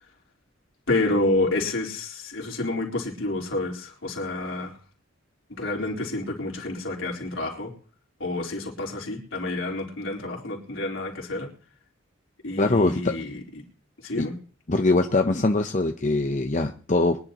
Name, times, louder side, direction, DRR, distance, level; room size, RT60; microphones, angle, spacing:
voice 1, 0.9-4.7 5.5-7.7 8.2-11.5 12.4-13.3 14.0-14.3, left 2 dB, 75° left, -2 dB, 4.1 m, -28 dB
voice 2, 12.6-13.1 14.2-14.3 14.7-17.2, left 2 dB, 35° left, 5 dB, 0.8 m, -22 dB
23.5 x 10.5 x 3.0 m, 0.39 s
head